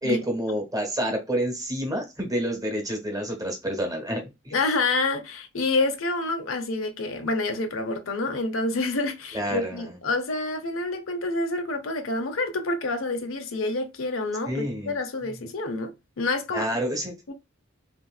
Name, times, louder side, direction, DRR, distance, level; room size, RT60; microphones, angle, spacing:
voice 1, 0.0-4.6 9.3-9.9 14.5-15.0 15.2-15.3 16.5-17.1, equal, 20° right, 1.1 m, -28 dB
voice 2, 4.5-16.7 17.3-17.4, left 2 dB, 85° left, 0.8 m, -28 dB
3.3 x 2.9 x 2.3 m
head